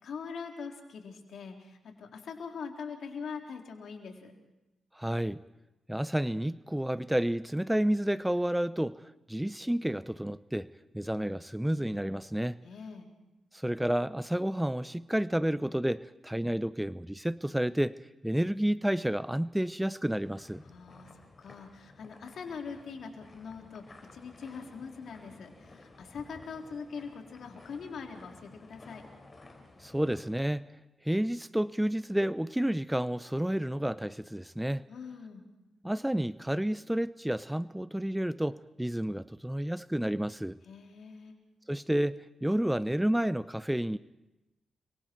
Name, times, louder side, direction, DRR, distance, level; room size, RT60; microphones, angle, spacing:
voice 1, 0.0-4.3 12.6-13.1 20.6-23.8 24.1-29.0 34.9-35.4 40.6-41.3, left 5 dB, 70° left, 2 dB, 3.8 m, -42 dB
voice 2, 4.9-5.4 5.9-10.7 10.9-12.6 13.5-18.0 18.2-20.6 29.8-30.7 31.0-34.8 35.8-40.6 41.7-44.0, right 1 dB, 5° right, 16 dB, 0.7 m, -30 dB
sound 1, 20.2-30.3, left 2 dB, 35° left, 5.9 m, -54 dB
30.0 x 24.0 x 4.6 m, 0.98 s
hypercardioid pair, 40°, 0 cm